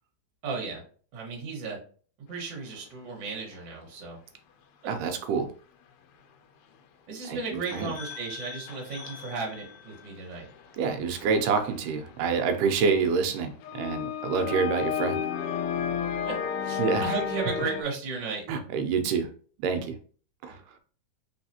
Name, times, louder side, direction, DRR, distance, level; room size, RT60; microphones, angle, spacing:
voice 1, 0.4-0.8 1.1-1.8 2.3-4.2 7.1-10.5 16.3-18.4, right 4 dB, 50° right, -1 dB, 1.6 m, -35 dB
sound 1, 3.5-3.6 7.7-10.1 10.6-13.0 13.6-17.8, left 8 dB, 85° left, 1.6 m, -33 dB
voice 2, 4.9-5.5 7.3-7.9 10.8-15.2 16.8-17.2 18.5-19.3 19.6-19.9 20.4-20.6, right 5 dB, 85° right, 6 dB, 2.2 m, -27 dB
4.0 x 3.9 x 2.8 m, 0.43 s
omnidirectional pair, 3.7 m